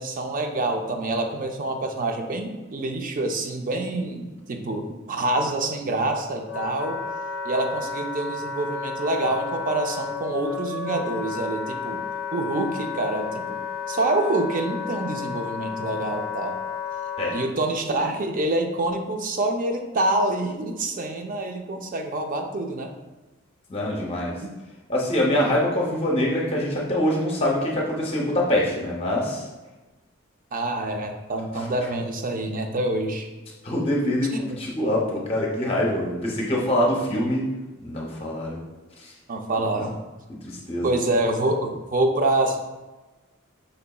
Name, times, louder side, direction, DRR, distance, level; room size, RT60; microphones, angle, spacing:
voice 1, 0.0-7.0 7.4-12.0 12.3-13.6 13.9-16.6 17.3-22.9 30.5-33.3 34.3-34.6 39.3-40.0 40.8-42.6, right 2 dB, 40° right, 4 dB, 0.5 m, -26 dB
Wind instrument woodwind instrument, 6.1-17.5, left 5 dB, 60° left, 0.4 m, -32 dB
voice 2, 23.7-24.3 24.9-29.4 33.6-37.4 37.8-38.6 40.5-41.0, left 1 dB, 30° left, -3 dB, 0.7 m, -24 dB
5.3 x 3.9 x 2.3 m, 1.1 s
head